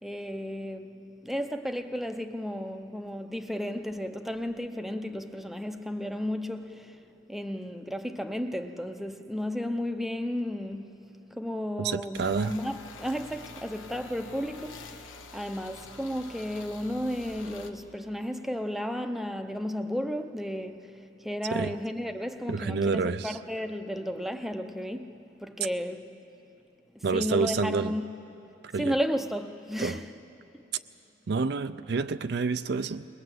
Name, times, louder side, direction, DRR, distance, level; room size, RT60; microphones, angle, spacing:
voice 1, 0.0-7.0 7.3-11.0 11.3-26.2 26.9-28.1 28.8-30.1 30.5-30.6, equal, ahead, 0.6 m, -33 dB
voice 2, 11.8-12.6 21.5-21.7 22.5-23.4 27.0-27.9 28.6-29.0 29.8-30.0 31.3-33.1, right 4 dB, 55° right, 0.4 m, -28 dB
sound 1, 12.1-17.7, left 3 dB, 85° left, 1.3 m, -47 dB
21.5 x 19.5 x 7.9 m
head